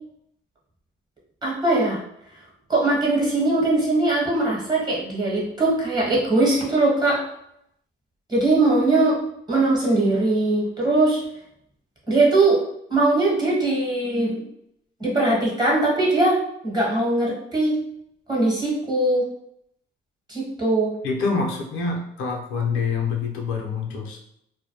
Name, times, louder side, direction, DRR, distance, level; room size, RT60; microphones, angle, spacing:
voice 1, 1.4-2.0 2.7-7.2 8.3-9.2 9.5-11.2 12.1-12.6 12.9-14.5 15.0-16.4 16.6-17.7 18.3-19.2 20.3-20.9, right 2 dB, 20° right, -4 dB, 1.0 m, -20 dB
voice 2, 21.0-24.2, left 4 dB, 85° left, 1 dB, 0.6 m, -26 dB
2.1 x 2.1 x 2.8 m, 0.75 s
cardioid pair, 90°, 20 cm